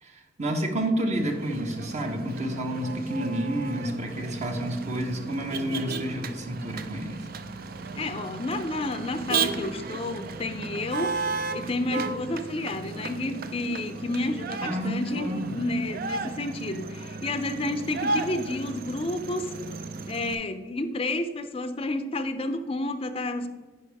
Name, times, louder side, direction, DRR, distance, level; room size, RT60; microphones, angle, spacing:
voice 1, 0.0-7.3 14.6-15.6, right 1 dB, 40° right, 4 dB, 1.0 m, -30 dB
Motor vehicle (road), 1.1-20.3, right 4 dB, 55° right, 0.5 m, -34 dB
voice 2, 8.0-11.2 11.5-19.5 20.1-23.5, left 2 dB, 35° left, 9 dB, 0.5 m, -30 dB
9.9 x 5.4 x 3.4 m, 1.3 s
head